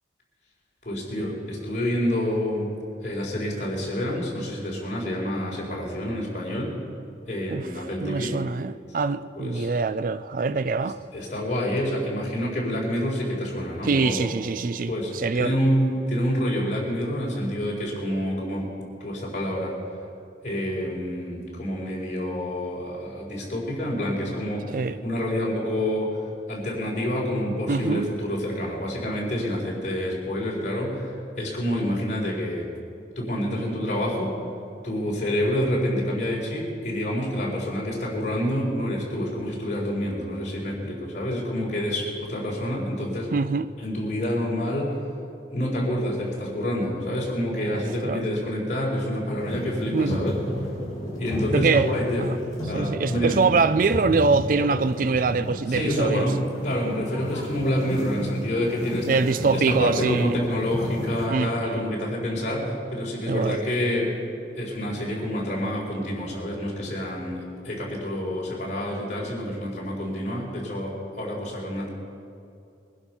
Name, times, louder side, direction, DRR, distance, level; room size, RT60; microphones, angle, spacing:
voice 1, 0.8-2.8 3.0-6.7 7.2-8.4 9.4-9.7 10.8-14.3 14.9-18.7 19.0-19.8 20.4-26.2 26.5-32.7 33.2-34.3 34.8-43.3 43.8-45.0 45.5-50.4 51.1-52.3 52.7-53.4 55.7-59.2 59.5-64.2 64.5-71.9, equal, 40° left, 4.2 m, -28 dB
voice 2, 8.0-11.0 13.8-15.5 24.7-25.0 27.7-28.1 43.3-43.7 48.0-48.2 49.9-50.3 51.5-51.9 52.2-52.4 52.7-56.3 59.1-60.4 61.3-61.7 63.3-63.6, right 4 dB, 45° right, 0.4 m, -24 dB
sound 1, 49.4-61.3, equal, 20° left, 5.2 m, -33 dB
22.0 x 11.5 x 5.6 m
head